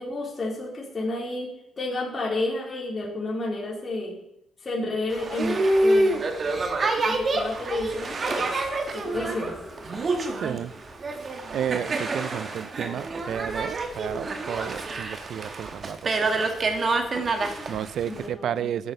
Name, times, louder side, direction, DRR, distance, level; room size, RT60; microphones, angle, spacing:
voice 1, 0.0-4.2 4.6-6.2 7.0-8.6 8.9-9.6 17.4-17.7 18.1-18.7, left 2 dB, 35° left, -3 dB, 3.9 m, -31 dB
Boat Water vehicle, 5.1-18.3, right 2 dB, 40° right, 2.0 m, -27 dB
sound 1, 9.1-14.0, equal, 5° right, 3.4 m, -47 dB
voice 2, 10.4-10.7 11.5-16.5 17.7-18.9, right 9 dB, 70° right, 18 dB, 0.6 m, -32 dB
12.5 x 9.0 x 7.2 m, 0.83 s
cardioid pair, 90°, 0 cm